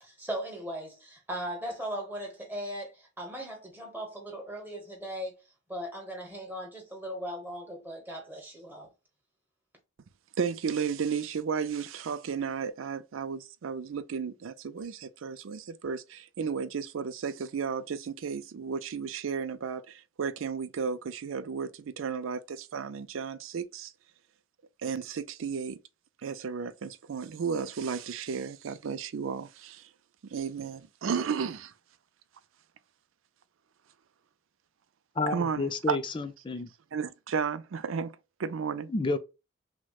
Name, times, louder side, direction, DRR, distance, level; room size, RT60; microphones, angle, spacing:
voice 1, 0.0-5.4 5.7-8.9, equal, 10° right, 1.2 m, -38 dB
voice 2, 10.4-23.9 24.8-25.8 26.2-29.9 30.3-31.7 35.3-36.0 36.9-38.1 38.4-38.9, right 6 dB, 85° right, 0.4 m, -33 dB
voice 3, 35.2-36.7 38.9-39.2, left 3 dB, 25° left, 0.4 m, -30 dB
5.9 x 2.1 x 2.3 m
head